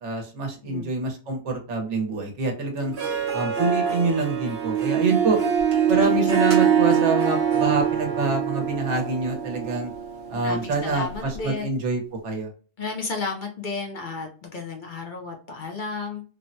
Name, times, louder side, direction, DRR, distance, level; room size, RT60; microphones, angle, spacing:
voice 1, 0.0-2.9 3.3-5.4 5.9-9.9 10.3-12.5, right 3 dB, 85° right, 3 dB, 1.1 m, -26 dB
Harp, 2.8-11.4, right 8 dB, 65° right, 0.9 m, -24 dB
sound 1, 5.6-8.7 9.0-9.1 9.9-10.0 10.4-10.5 10.8-11.4, equal, 35° right, 0.7 m, -40 dB
voice 2, 10.3-11.7 12.8-16.2, left 4 dB, 55° left, 2 dB, 0.6 m, -32 dB
3.3 x 2.1 x 2.5 m, 0.38 s
omnidirectional pair, 1.2 m